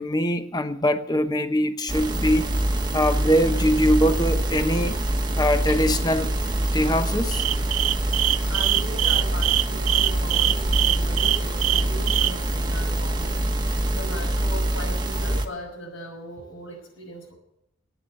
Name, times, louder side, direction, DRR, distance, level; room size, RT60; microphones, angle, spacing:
voice 1, 0.0-2.5 2.9-4.9 5.4-6.3 6.7-7.4, equal, 20° left, 9 dB, 1.0 m, -22 dB
sound 1, 1.9-15.5, right 1 dB, 20° right, 1.2 m, -25 dB
sound 2, 7.3-12.3, right 15 dB, 90° right, 0.5 m, -22 dB
voice 2, 8.5-13.4 13.9-17.3, equal, 70° left, 2 dB, 6.1 m, -38 dB
15.0 x 10.0 x 7.6 m, 0.80 s
head